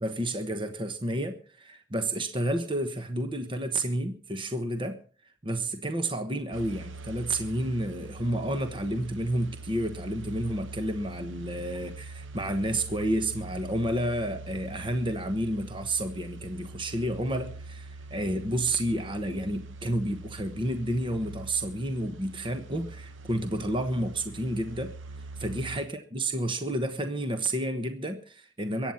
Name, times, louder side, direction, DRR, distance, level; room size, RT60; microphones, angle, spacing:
voice 1, 0.0-5.0 5.4-24.9 25.4-28.9, right 1 dB, 25° right, 1.2 m, -30 dB
sound 1, 6.5-25.8, right 3 dB, 85° right, 1.0 m, -43 dB
22.5 x 9.2 x 5.7 m
head